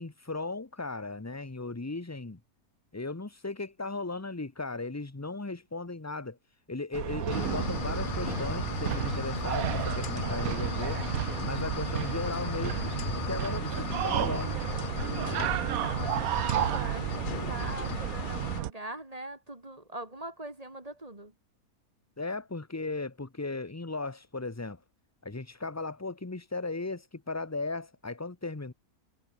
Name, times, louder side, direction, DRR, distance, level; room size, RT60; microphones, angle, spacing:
voice 1, 0.0-2.4 2.9-6.4 6.7-11.0 11.4-12.9 13.3-14.6 22.2-24.8 25.2-28.7, left 3 dB, 15° left, 0.9 m, -36 dB
sound 1, 6.9-18.7, right 13 dB, 75° right, 1.1 m, -32 dB
sound 2, 7.3-18.6, left 9 dB, 55° left, 0.5 m, -36 dB
voice 2, 15.2-21.3, right 1 dB, 25° right, 2.7 m, -43 dB
omnidirectional pair, 1.6 m